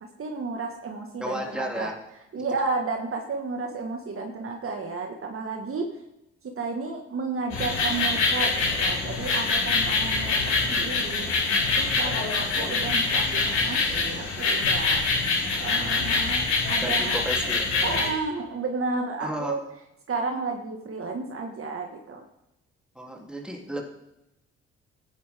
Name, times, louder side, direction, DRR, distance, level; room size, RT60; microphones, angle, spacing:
voice 1, 0.2-1.9 2.3-5.9 6.4-11.3 11.8-15.0 15.6-17.2 17.8-19.6 20.1-22.2, right 4 dB, 50° right, 3 dB, 1.8 m, -32 dB
voice 2, 1.2-2.0 16.8-17.7 19.2-19.6 22.9-23.8, equal, 5° right, 0 dB, 3.2 m, -32 dB
sound 1, 7.5-18.1, left 4 dB, 70° left, 4.5 m, -25 dB
15.0 x 10.5 x 3.7 m, 0.90 s
hypercardioid pair, 50°, 29 cm